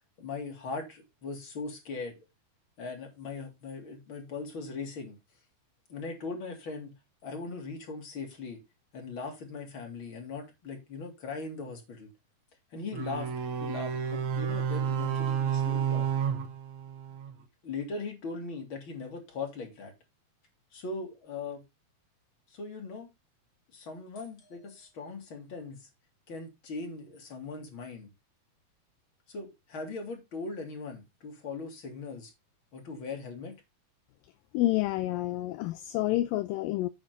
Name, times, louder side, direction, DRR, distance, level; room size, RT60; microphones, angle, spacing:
voice 1, 0.2-2.2 2.8-5.2 5.9-7.0 7.2-8.6 8.9-12.1 12.7-13.3 13.6-16.1 17.6-19.9 20.7-21.6 22.5-23.1 23.7-25.9 26.3-28.1 29.3-32.3 32.7-33.5, left 4 dB, 35° left, 3.5 m, -39 dB
sound 1, 12.9-17.4, right 8 dB, 60° right, 2.4 m, -31 dB
voice 2, 34.5-36.9, left 16 dB, 80° left, 2.2 m, -29 dB
9.0 x 5.8 x 5.3 m
omnidirectional pair, 4.3 m